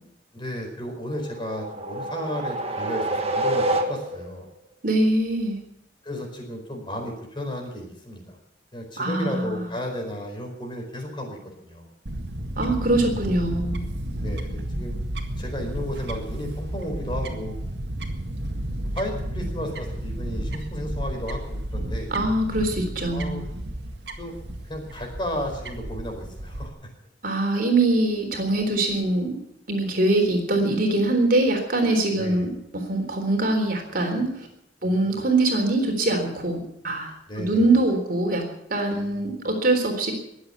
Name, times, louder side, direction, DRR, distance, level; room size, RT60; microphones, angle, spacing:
voice 1, 0.3-4.5 6.0-8.4 8.7-11.9 14.1-15.0 15.4-17.6 18.9-22.1 23.1-23.4 24.2-24.4 24.6-26.9 32.1-32.4 34.8-35.2 37.3-37.7 38.9-39.4, equal, 25° left, 2 dB, 4.6 m, -33 dB
sound 1, 1.1-4.4, right 1 dB, 35° right, 1.6 m, -27 dB
voice 2, 4.8-5.6 9.0-9.7 12.6-13.8 22.1-23.4 27.2-29.3 29.7-34.5 34.8-37.1 37.4-38.4 38.7-40.1, right 2 dB, 50° right, 3 dB, 3.8 m, -23 dB
Fowl / Bird, 12.1-26.7, right 1 dB, 70° right, 1.9 m, -32 dB
21.5 x 8.0 x 8.3 m, 0.81 s
head